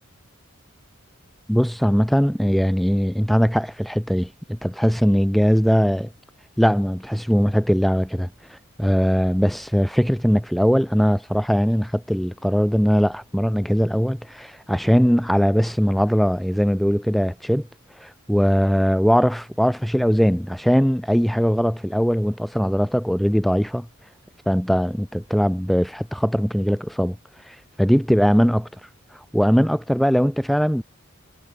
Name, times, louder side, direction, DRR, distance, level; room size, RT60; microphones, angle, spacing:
voice 1, 1.5-6.1 6.6-17.7 18.0-23.9 24.5-27.2 27.5-28.7 29.3-30.8, equal, ahead, 0.4 m, -20 dB
head